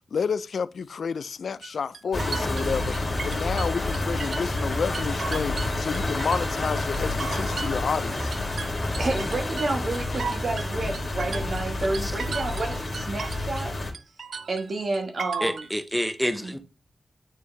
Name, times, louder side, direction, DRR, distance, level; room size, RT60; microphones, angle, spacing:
voice 1, 0.1-8.3, left 6 dB, 75° left, 0.3 m, -30 dB
sound 1, 1.6-4.7 4.9-6.6 6.9-13.7 13.9-15.7, right 5 dB, 70° right, 0.5 m, -36 dB
sound 2, 2.1-13.9, left 2 dB, 40° left, 2.0 m, -29 dB
voice 2, 8.6-13.7 14.5-15.7 16.4-16.5, right 2 dB, 55° right, 1.3 m, -30 dB
voice 3, 15.4-16.6, equal, ahead, 0.7 m, -27 dB
9.2 x 3.3 x 3.2 m
wide cardioid pair, 125°, 0 cm